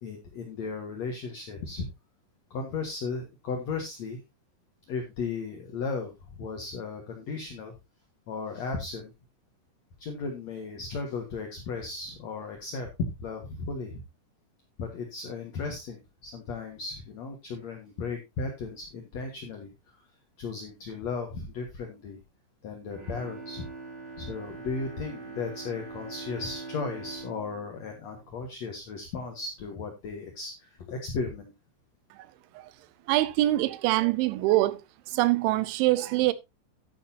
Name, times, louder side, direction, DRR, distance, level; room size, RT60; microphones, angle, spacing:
voice 1, 0.0-1.9 2.5-4.2 4.9-6.1 6.4-7.7 8.3-9.1 10.0-14.0 14.8-19.7 20.4-22.2 22.6-23.6 24.2-31.5, left 4 dB, 65° left, 1.8 m, -35 dB
Bowed string instrument, 22.8-29.1 29.5-29.6, right 4 dB, 45° right, 7.1 m, -43 dB
voice 2, 33.1-34.8 35.1-36.3, right 17 dB, 85° right, 3.2 m, -24 dB
11.5 x 10.5 x 2.7 m
omnidirectional pair, 5.3 m